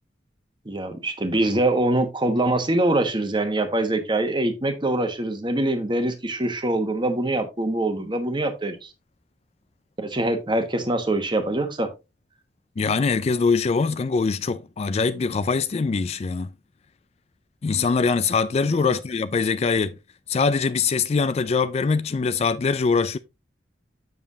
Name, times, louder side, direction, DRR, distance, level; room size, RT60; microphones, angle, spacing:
voice 1, 0.6-8.9 10.0-11.9 18.7-18.9, right 1 dB, 25° right, 1.3 m, -24 dB
voice 2, 12.8-16.5 17.6-19.9 20.3-23.2, left 4 dB, 35° left, 0.3 m, -23 dB
7.4 x 7.1 x 2.7 m
head